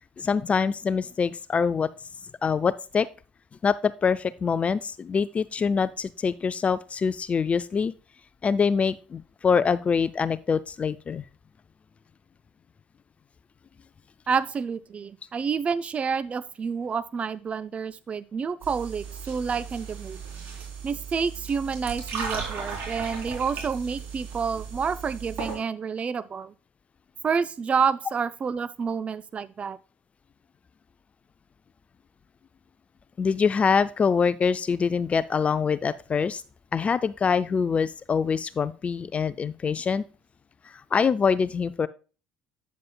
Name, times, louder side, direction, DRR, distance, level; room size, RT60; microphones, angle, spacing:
voice 1, 0.2-1.9 2.4-3.1 3.6-7.9 8.4-11.2 33.2-36.4 36.7-40.1 40.6-41.9, left 6 dB, 35° left, 15 dB, 0.4 m, -24 dB
voice 2, 14.3-20.2 20.8-26.5 27.2-29.8, right 6 dB, 35° right, 17 dB, 0.4 m, -29 dB
sound 1, 18.6-25.6, right 5 dB, 55° right, 3.8 m, -36 dB
9.3 x 7.5 x 2.3 m, 0.35 s
hypercardioid pair, 65°, 4 cm